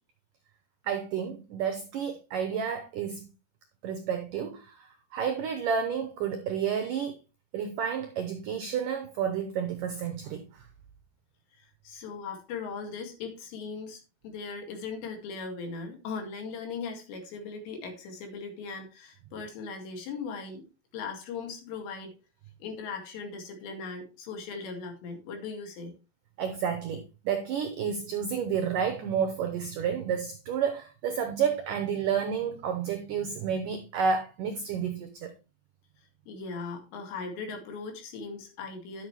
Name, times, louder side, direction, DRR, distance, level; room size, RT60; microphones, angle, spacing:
voice 1, 0.8-3.3 3.8-7.2 7.5-10.6 26.4-35.3, right 7 dB, 80° right, 1.9 m, -30 dB
voice 2, 11.6-20.7 20.9-22.1 22.6-25.9 36.3-39.1, left 4 dB, 75° left, 4.3 m, -39 dB
11.0 x 7.8 x 3.3 m
omnidirectional pair, 5.1 m